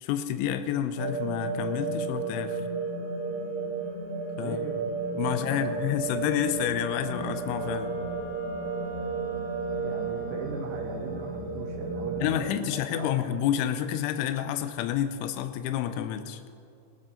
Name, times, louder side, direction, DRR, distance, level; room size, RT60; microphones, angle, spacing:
voice 1, 0.0-2.6 4.4-4.6 5.2-8.0 12.2-16.4, left 10 dB, 90° left, 10 dB, 3.0 m, -29 dB
sound 1, 0.9-12.4, right 3 dB, 70° left, 5.9 m, -33 dB
voice 2, 4.4-4.8 5.1-5.8 9.7-13.1, right 3 dB, 75° right, 0 dB, 3.2 m, -39 dB
Wind instrument woodwind instrument, 6.6-10.7, right 5 dB, 20° left, 2.7 m, -45 dB
19.0 x 12.0 x 3.8 m, 2.4 s
omnidirectional pair, 5.3 m